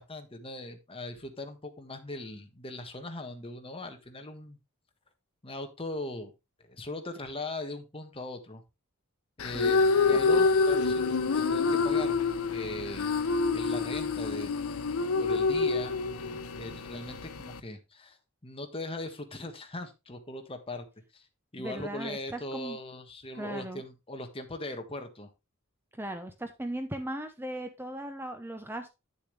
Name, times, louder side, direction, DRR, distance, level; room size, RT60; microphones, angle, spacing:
voice 1, 0.0-4.6 5.4-6.3 6.6-8.6 9.4-9.8 10.1-13.2 13.5-14.6 15.2-18.2 18.4-20.8 21.1-21.2 21.5-25.3, left 2 dB, 25° left, 6 dB, 1.5 m, -40 dB
sound 1, 9.4-17.6, left 4 dB, 90° left, 0.8 m, -27 dB
voice 2, 21.6-22.8 23.3-23.8 25.9-28.9, right 1 dB, 10° right, 7 dB, 0.8 m, -38 dB
9.9 x 7.0 x 3.3 m, 0.25 s
head